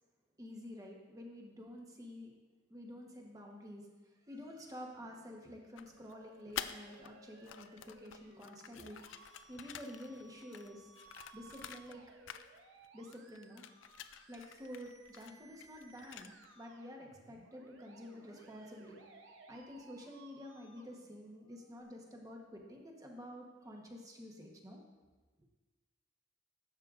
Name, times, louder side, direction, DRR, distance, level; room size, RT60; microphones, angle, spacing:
voice 1, 0.4-2.3 2.7-10.9 11.3-12.0 12.9-13.6 14.3-19.0 19.5-24.8, equal, 20° right, 0 dB, 1.1 m, -50 dB
sound 1, 5.8-7.1 7.4-12.0 12.3-12.9 13.1-16.6, left 10 dB, 70° left, 0.4 m, -49 dB
Musical instrument, 5.9-21.8, right 4 dB, 75° right, 0.8 m, -61 dB
12.0 x 7.5 x 2.5 m, 1.3 s
head